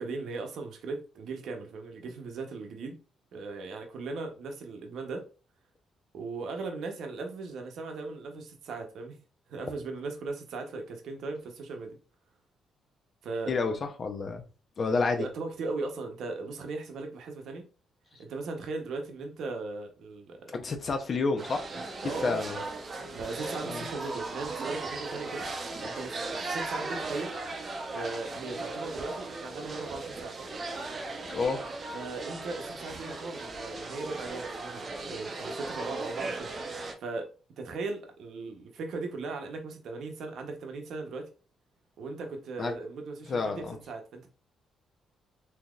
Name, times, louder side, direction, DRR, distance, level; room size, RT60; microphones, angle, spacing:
voice 1, 0.0-3.0 3.3-5.2 6.1-9.2 9.5-12.0 13.2-13.6 15.2-17.7 18.2-20.5 22.0-22.4 23.1-25.5 25.8-26.2 26.5-27.3 27.9-30.5 31.9-41.3 42.0-44.3, right 3 dB, 70° right, 0.8 m, -38 dB
voice 2, 13.5-14.4 14.8-15.2 20.5-21.6 22.0-22.6 23.7-23.9 31.3-31.6 42.6-42.7 43.3-43.8, left 4 dB, 45° left, 0.7 m, -29 dB
sound 1, 21.4-36.9, right 3 dB, 40° right, 0.7 m, -37 dB
3.5 x 2.8 x 2.3 m
cardioid pair, 90°, 0 cm